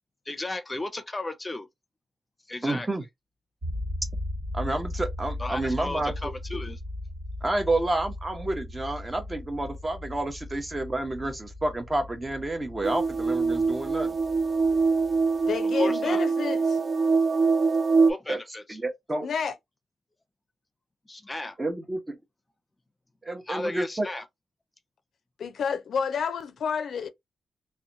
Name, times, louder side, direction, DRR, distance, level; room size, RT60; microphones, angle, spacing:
voice 1, 0.3-1.7 2.5-2.9 5.4-6.8 14.7-14.8 15.7-16.2 18.1-18.8 21.0-21.6 23.4-24.2, left 2 dB, 20° left, 0.6 m, -34 dB
voice 2, 2.6-3.0 4.5-6.3 7.4-14.2 18.3-18.4 18.7-19.3 21.6-22.2 23.2-24.1, right 2 dB, 25° right, 0.7 m, -29 dB
sound 1, 3.6-15.5, left 1 dB, 65° right, 1.3 m, -37 dB
sound 2, 12.8-18.1, right 4 dB, 40° right, 0.3 m, -24 dB
voice 3, 15.5-16.8 19.2-19.6 25.4-27.1, left 6 dB, 75° left, 0.4 m, -29 dB
2.7 x 2.1 x 2.5 m
cardioid pair, 90°, 0 cm